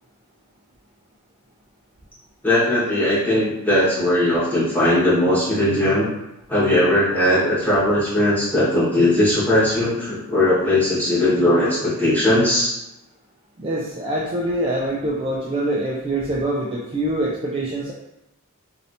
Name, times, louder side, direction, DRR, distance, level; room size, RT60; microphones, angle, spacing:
voice 1, 2.4-6.1 6.5-12.7, left 1 dB, 10° left, -12 dB, 1.4 m, -19 dB
voice 2, 13.6-17.9, right 1 dB, 25° right, -4 dB, 0.3 m, -24 dB
3.1 x 2.7 x 2.7 m, 0.90 s
head